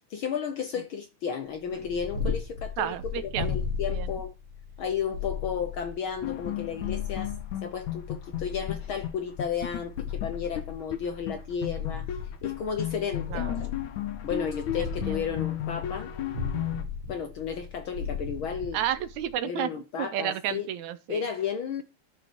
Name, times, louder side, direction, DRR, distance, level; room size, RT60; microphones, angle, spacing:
voice 1, 0.1-4.3 4.8-7.3 7.6-12.1 12.4-13.7 14.2-16.1 17.1-18.8 19.4-20.7 21.1-21.8, left 7 dB, 65° left, 1.3 m, -33 dB
Purr, 1.6-19.3, left 5 dB, 50° right, 3.7 m, -36 dB
voice 2, 2.8-3.6 3.9-4.1 13.3-13.5 14.8-15.2 18.7-19.7 20.0-21.2, right 11 dB, 80° right, 2.3 m, -31 dB
sound 1, 6.2-8.8 9.0-9.1 9.4-11.0 11.3-11.4 11.6-16.8, left 12 dB, 80° left, 2.5 m, -34 dB
11.5 x 6.6 x 4.6 m
omnidirectional pair, 3.3 m